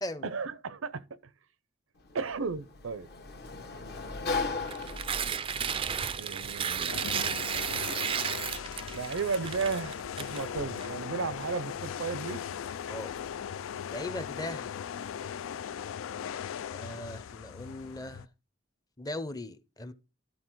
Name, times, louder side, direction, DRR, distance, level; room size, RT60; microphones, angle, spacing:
voice 1, 0.2-1.2 2.1-3.1 4.9-5.1 6.2-7.1 8.9-12.5 16.9-17.0, right 5 dB, 80° right, 0.6 m, -34 dB
Sliding door, 2.0-14.6, left 3 dB, 55° left, 1.2 m, -42 dB
Tearing, 4.6-10.9, right 7 dB, 25° right, 0.3 m, -33 dB
sound 1, 6.9-18.3, left 8 dB, 80° left, 0.4 m, -39 dB
voice 2, 13.9-14.7 16.7-18.3 19.0-19.9, left 1 dB, 20° left, 0.7 m, -38 dB
12.0 x 4.0 x 4.6 m
head